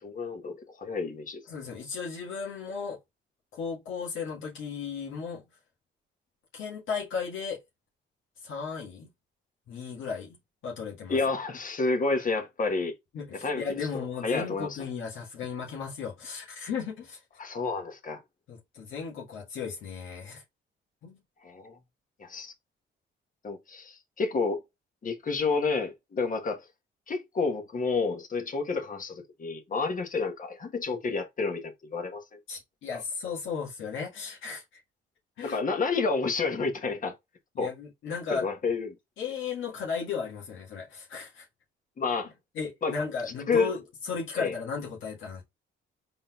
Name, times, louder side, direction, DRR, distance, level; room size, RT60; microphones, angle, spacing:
voice 1, 0.0-1.4 11.1-12.9 13.4-13.6 13.9-14.8 17.4-18.2 21.4-21.7 22.2-22.5 23.4-24.6 25.0-26.6 27.1-32.4 35.4-37.1 37.6-37.7 38.3-38.9 42.0-42.3 42.8-42.9 43.5-43.7 44.4-44.5, left 4 dB, 40° left, 1.3 m, -30 dB
voice 2, 1.5-3.0 3.5-5.4 6.5-7.6 8.4-9.1 9.7-10.4 10.6-11.2 13.1-17.2 18.5-20.4 21.0-21.2 32.5-34.8 35.4-35.6 37.6-38.5 39.2-41.5 42.6-45.4, left 5 dB, 80° left, 1.8 m, -35 dB
4.1 x 3.8 x 2.4 m
cardioid pair, 90°, 20 cm